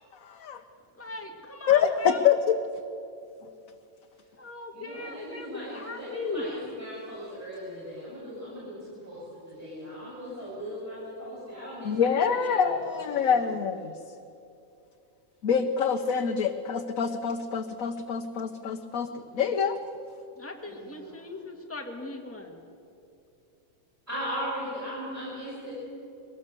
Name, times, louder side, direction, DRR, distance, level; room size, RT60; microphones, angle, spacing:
voice 1, 0.2-0.6 1.7-2.6 11.8-13.9 15.4-19.8, left 7 dB, 80° left, 5 dB, 1.3 m, -26 dB
voice 2, 1.0-2.4 4.4-6.4 20.4-22.6, left 2 dB, 10° left, 1 dB, 2.0 m, -38 dB
voice 3, 4.7-12.6 12.9-13.5 20.7-21.3 24.1-25.7, equal, 10° right, -10 dB, 7.2 m, -38 dB
22.0 x 18.5 x 8.2 m, 2.7 s
omnidirectional pair, 1.4 m